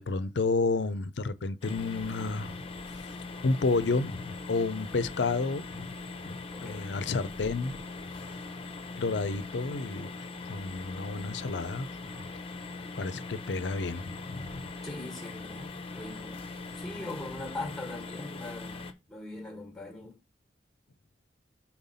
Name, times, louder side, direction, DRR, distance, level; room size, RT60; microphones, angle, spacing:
voice 1, 0.0-2.6 2.9-3.1 3.4-6.0 6.2-7.8 9.0-10.1 10.5-12.3 13.0-14.7, left 3 dB, 75° left, 0.5 m, -31 dB
sound 1, 1.6-18.9, left 3 dB, 35° left, 0.8 m, -41 dB
voice 2, 6.5-7.2 14.8-16.5 16.7-20.2, left 2 dB, 5° left, 1.3 m, -41 dB
5.7 x 4.4 x 5.4 m
head